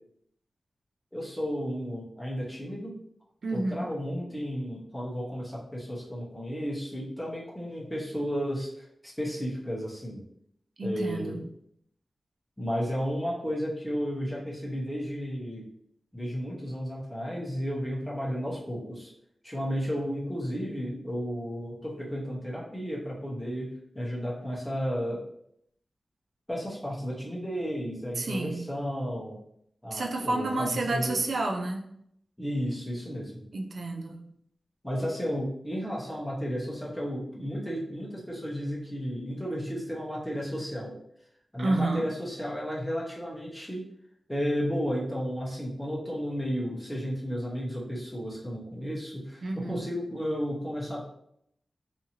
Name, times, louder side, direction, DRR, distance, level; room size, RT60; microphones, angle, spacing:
voice 1, 1.1-2.9 3.5-10.2 10.8-11.4 12.6-15.7 16.1-19.1 19.4-25.2 26.5-29.4 29.8-31.2 32.4-33.4 34.8-41.0 41.5-43.9 44.3-51.1, equal, 5° left, -5 dB, 0.7 m, -33 dB
voice 2, 3.4-3.9 10.8-11.4 28.2-28.7 29.9-31.8 33.5-34.2 41.6-42.1 49.4-49.8, right 2 dB, 70° right, 3 dB, 0.4 m, -30 dB
2.7 x 2.5 x 2.8 m, 0.72 s
wide cardioid pair, 100°, 0 cm